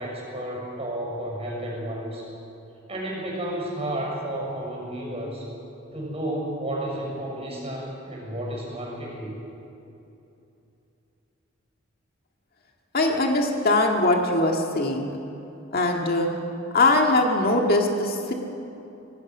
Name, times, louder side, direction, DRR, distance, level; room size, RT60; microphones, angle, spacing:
voice 1, 0.0-2.3 2.9-5.5 5.9-9.4, right 1 dB, 30° right, -2 dB, 6.2 m, -32 dB
voice 2, 12.9-15.1 15.7-16.3 16.7-18.3, left 2 dB, 50° left, 1 dB, 1.9 m, -21 dB
25.5 x 18.0 x 6.2 m, 2.8 s
head